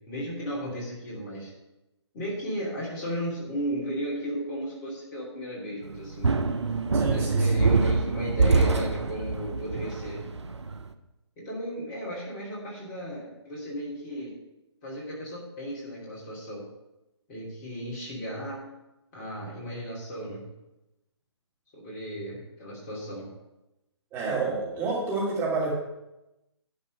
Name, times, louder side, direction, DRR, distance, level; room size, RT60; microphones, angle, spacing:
voice 1, 0.1-1.5 2.1-6.4 7.1-10.2 11.4-14.3 14.8-16.6 17.3-18.6 19.1-20.4 21.7-23.3, equal, 25° left, -5 dB, 3.1 m, -35 dB
sound 1, 5.9-10.9, right 3 dB, 80° right, 0.7 m, -25 dB
voice 2, 6.9-7.6 24.1-25.7, right 3 dB, 15° right, -5 dB, 2.8 m, -29 dB
11.0 x 4.3 x 6.6 m, 0.96 s
figure-of-eight pair, 140°, 15 cm